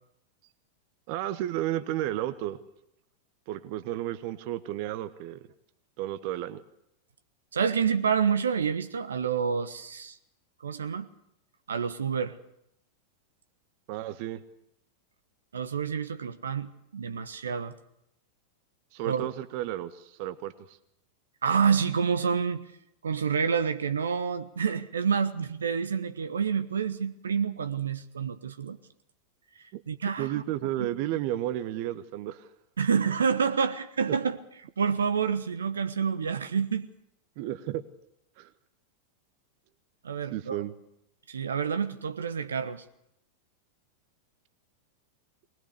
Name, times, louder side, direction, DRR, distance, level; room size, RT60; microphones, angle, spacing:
voice 1, 1.1-2.6 3.5-5.4 6.0-6.6 13.9-14.4 18.9-20.8 29.7-29.8 30.2-32.5 34.1-34.2 37.4-37.8 38.4-38.5 40.3-40.7, right 13 dB, 45° right, 13 dB, 1.1 m, -32 dB
voice 2, 7.5-10.2 10.6-11.1 11.7-12.4 15.5-17.7 19.0-19.3 21.4-22.6 23.0-28.8 29.6-30.4 30.8-31.0 32.8-34.4 34.8-36.9 40.0-40.6 41.3-42.8, right 6 dB, 70° right, 12 dB, 1.1 m, -28 dB
21.5 x 19.5 x 6.8 m, 0.79 s
figure-of-eight pair, 90°, 0 cm